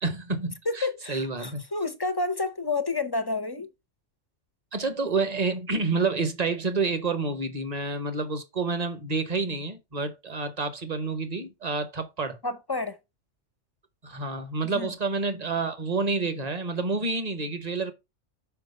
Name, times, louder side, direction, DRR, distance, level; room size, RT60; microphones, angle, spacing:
voice 1, 0.0-1.6 4.7-12.4 14.0-17.9, right 3 dB, 35° right, 1.1 m, -29 dB
voice 2, 0.7-3.7 12.4-13.0 14.7-14.9, left 3 dB, 35° left, 0.4 m, -29 dB
5.9 x 5.1 x 5.3 m
omnidirectional pair, 1.3 m